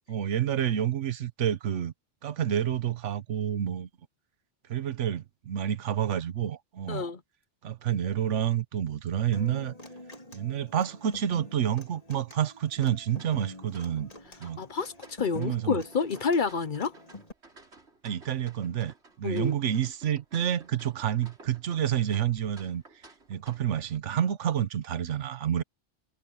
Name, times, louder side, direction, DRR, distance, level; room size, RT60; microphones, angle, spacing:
voice 1, 0.1-1.9 2.2-3.9 4.7-7.0 7.6-9.7 10.3-14.1 14.4-14.6 15.3-15.8 18.0-22.8 23.3-25.6, right 10 dB, 85° right, 1.2 m, -29 dB
voice 2, 6.9-7.2 14.6-16.9 19.2-19.6, left 5 dB, 50° left, 0.8 m, -29 dB
Human voice / Acoustic guitar, 9.3-17.3, left 2 dB, 30° left, 3.4 m, -47 dB
sound 1, 13.1-24.0, right 3 dB, 65° right, 3.7 m, -56 dB
omnidirectional pair, 1.2 m